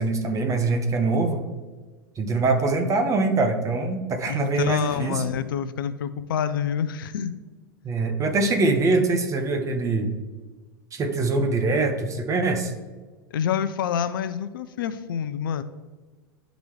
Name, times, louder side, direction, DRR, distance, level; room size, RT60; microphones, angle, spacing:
voice 1, 0.0-1.4 2.2-5.2 7.8-10.1 10.9-12.7, right 3 dB, 25° right, 6 dB, 1.1 m, -23 dB
voice 2, 4.3-7.3 13.3-15.6, left 8 dB, 70° left, 12 dB, 0.5 m, -27 dB
12.0 x 4.0 x 3.2 m, 1.3 s
hypercardioid pair, 95°, 12 cm